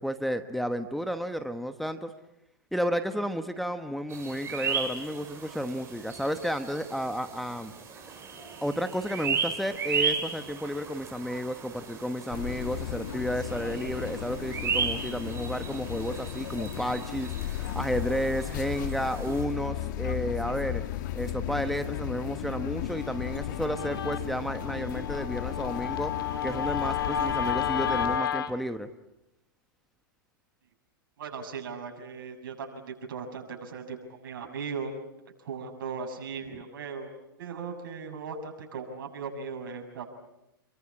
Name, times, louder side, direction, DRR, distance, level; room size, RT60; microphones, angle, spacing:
voice 1, 0.0-2.1 2.7-7.7 8.6-20.8 21.1-26.1 26.4-28.9, equal, ahead, 7 dB, 1.1 m, -32 dB
sound 1, 4.1-19.4, right 5 dB, 20° right, 6.5 m, -36 dB
sound 2, 12.3-28.2, left 12 dB, 55° left, 1.7 m, -35 dB
Guitar, 23.0-28.5, left 8 dB, 80° left, 2.3 m, -32 dB
voice 2, 31.2-34.9 35.4-37.1 37.4-40.0, right 5 dB, 65° right, 3 dB, 7.2 m, -38 dB
29.0 x 23.5 x 8.5 m, 0.89 s
hypercardioid pair, 120°, 12 cm